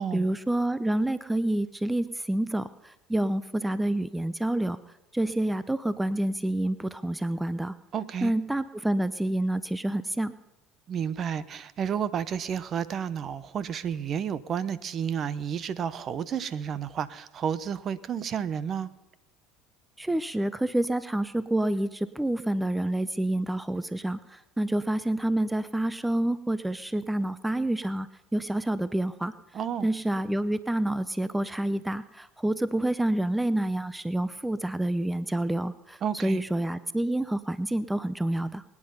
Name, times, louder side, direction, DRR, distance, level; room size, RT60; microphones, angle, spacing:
voice 1, 0.1-4.8 5.1-7.8 8.2-10.3 20.0-28.1 28.3-29.3 29.8-38.6, right 1 dB, 5° right, 15 dB, 0.5 m, -28 dB
voice 2, 7.9-8.3 10.9-18.9 29.5-29.9 36.0-36.4, right 8 dB, 45° right, 17 dB, 0.8 m, -31 dB
22.0 x 9.8 x 5.4 m, 0.95 s
supercardioid pair, 90°, 0 cm